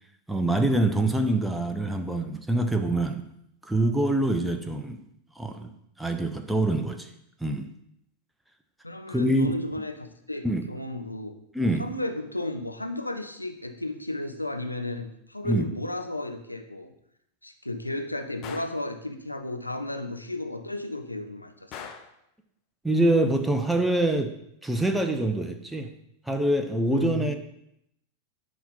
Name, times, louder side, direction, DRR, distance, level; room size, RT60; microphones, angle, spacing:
voice 1, 0.3-3.3 3.6-5.0 5.4-5.7 6.0-7.1 7.4-7.7 9.1-9.5 10.4-10.6 11.5-11.9 15.4-15.7 22.8-24.4 24.6-25.9 26.3-27.3, right 1 dB, 5° right, 6 dB, 0.7 m, -25 dB
voice 2, 8.8-11.4 11.8-16.9 17.4-21.9 26.9-27.3, left 2 dB, 85° left, 6 dB, 0.7 m, -34 dB
Gunshot gunfire, 18.4-18.8 21.7-22.2, left 7 dB, 35° left, 0.9 m, -41 dB
10.5 x 3.7 x 5.6 m, 0.76 s
figure-of-eight pair, 90°, 0 cm